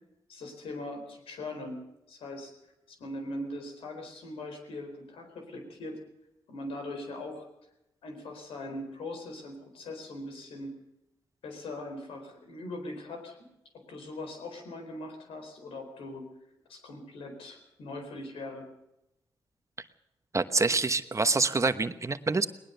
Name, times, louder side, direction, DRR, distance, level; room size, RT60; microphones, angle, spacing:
voice 1, 0.3-2.5 2.9-6.0 6.5-7.5 8.0-10.7 11.4-13.4 13.7-16.3 16.7-18.7, left 1 dB, 85° left, 4 dB, 4.3 m, -40 dB
voice 2, 20.3-22.5, right 3 dB, 35° right, 11 dB, 1.1 m, -26 dB
19.5 x 19.5 x 6.9 m, 0.87 s
cardioid pair, 60°, 9 cm